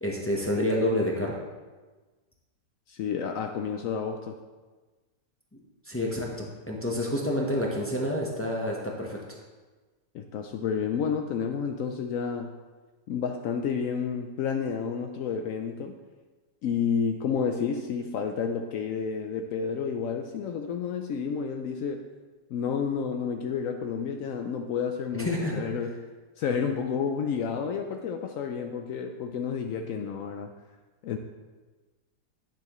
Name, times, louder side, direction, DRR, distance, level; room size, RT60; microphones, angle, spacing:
voice 1, 0.0-1.3 5.9-9.2 25.1-25.6, left 1 dB, 20° left, -2 dB, 0.4 m, -28 dB
voice 2, 2.9-4.4 10.1-12.5 13.1-15.9 16.6-22.0 22.5-26.0 26.4-30.5 31.0-31.2, left 6 dB, 85° left, 4 dB, 0.7 m, -30 dB
9.4 x 7.2 x 3.0 m, 1.3 s
omnidirectional pair, 2.0 m